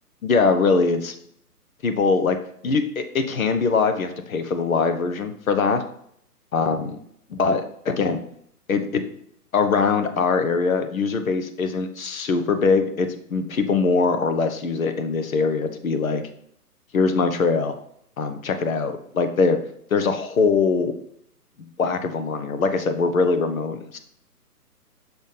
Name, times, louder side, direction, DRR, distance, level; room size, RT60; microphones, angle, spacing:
voice 1, 0.2-1.1 1.8-2.4 2.6-5.8 6.5-7.0 7.3-8.2 8.7-9.0 9.5-16.2 16.9-17.7 18.2-19.6 19.9-21.0 21.8-24.0, left 4 dB, 60° left, 8 dB, 1.0 m, -22 dB
6.2 x 3.4 x 5.6 m, 0.69 s
hypercardioid pair, 150°, 47 cm